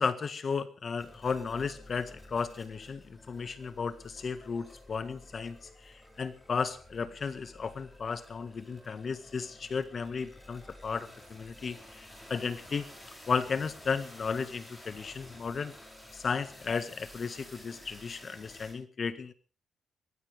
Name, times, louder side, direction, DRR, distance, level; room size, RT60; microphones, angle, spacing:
voice 1, 0.0-12.9 13.3-15.7 16.1-19.3, left 5 dB, 40° left, 12 dB, 1.8 m, -34 dB
sound 1, 1.0-18.7, left 1 dB, 10° left, 7.3 m, -52 dB
23.0 x 16.0 x 3.6 m, 0.36 s
cardioid pair, 115°, 0 cm